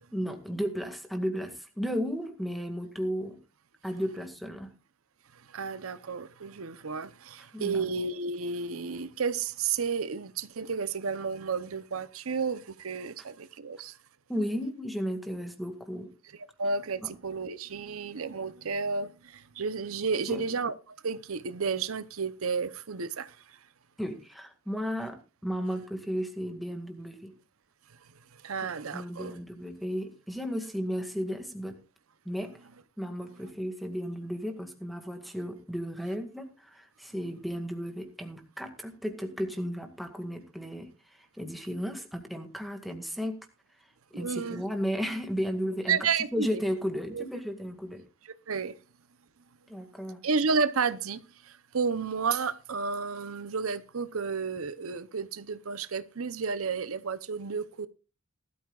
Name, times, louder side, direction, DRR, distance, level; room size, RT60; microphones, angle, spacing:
voice 1, 0.1-3.4 3.8-4.7 7.5-7.8 14.3-16.1 17.0-17.1 20.3-20.4 24.0-27.3 28.9-31.8 32.3-32.5 33.0-40.9 41.4-43.4 44.1-46.0 46.3-48.0 49.7-50.2, equal, ahead, 2.0 m, -34 dB
voice 2, 5.5-14.0 16.6-23.6 28.4-29.3 44.1-44.6 45.9-46.6 47.1-47.2 48.5-48.8 50.2-57.9, right 5 dB, 85° right, 0.8 m, -32 dB
18.5 x 13.0 x 2.4 m
head